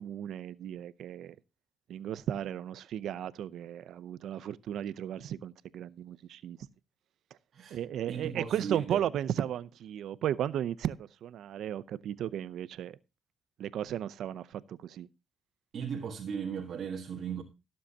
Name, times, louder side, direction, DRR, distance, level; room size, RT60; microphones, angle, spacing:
voice 1, 0.0-1.4 1.9-6.6 7.7-13.0 13.6-15.1, right 10 dB, 75° right, 0.6 m, -35 dB
voice 2, 8.1-9.0 15.7-17.4, right 7 dB, 60° right, 1.6 m, -36 dB
17.5 x 7.6 x 2.8 m
cardioid pair, 90°, 0 cm